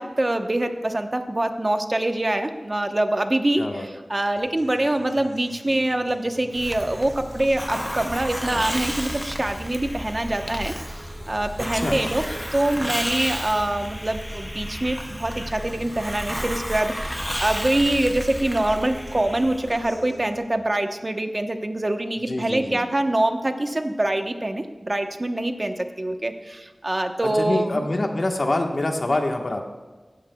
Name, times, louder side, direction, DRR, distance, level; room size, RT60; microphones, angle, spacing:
voice 1, 0.0-12.2 12.5-27.8, right 1 dB, 35° right, 6 dB, 0.9 m, -25 dB
sound 1, 4.4-20.4, right 1 dB, 90° right, 3.6 m, -45 dB
Hiss, 6.5-20.0, equal, ahead, 0.5 m, -32 dB
voice 2, 22.2-22.8 27.3-29.6, left 2 dB, 60° left, 2 dB, 1.3 m, -25 dB
17.0 x 13.0 x 2.3 m, 1.3 s
wide cardioid pair, 60°, 0 cm